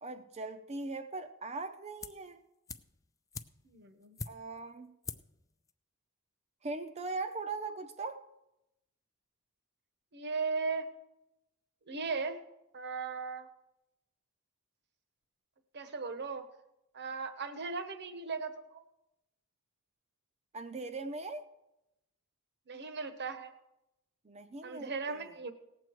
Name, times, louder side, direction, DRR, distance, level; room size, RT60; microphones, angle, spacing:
voice 1, 0.0-2.4 4.3-4.9 6.6-8.2 20.5-21.4 24.2-25.3, right 3 dB, 30° right, 7 dB, 0.6 m, -40 dB
sound 1, 2.0-2.3 2.7-4.7 5.0-5.4 5.7-5.8, left 4 dB, 15° left, 0.3 m, -44 dB
voice 2, 3.6-4.1 10.1-10.9 11.9-12.4 12.7-13.5 15.7-16.4 16.9-18.8 22.7-23.5 24.6-25.5, right 4 dB, 50° right, 10 dB, 1.0 m, -37 dB
18.0 x 7.7 x 4.5 m, 0.90 s
head